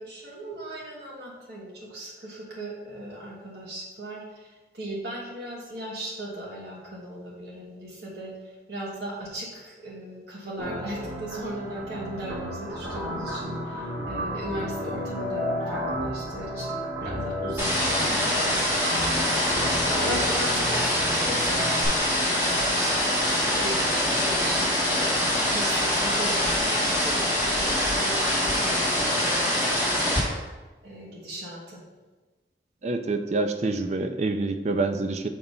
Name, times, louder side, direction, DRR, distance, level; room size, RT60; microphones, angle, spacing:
voice 1, 0.0-19.5 19.8-30.5 30.8-31.8, right 1 dB, 65° right, -4 dB, 1.3 m, -38 dB
sound 1, 10.6-21.9, equal, 80° right, 1.6 m, -33 dB
sound 2, 17.6-30.2, left 1 dB, 10° right, 1.6 m, -24 dB
voice 2, 32.8-35.3, right 3 dB, 35° right, 7 dB, 0.4 m, -26 dB
6.6 x 3.0 x 5.3 m, 1.2 s
head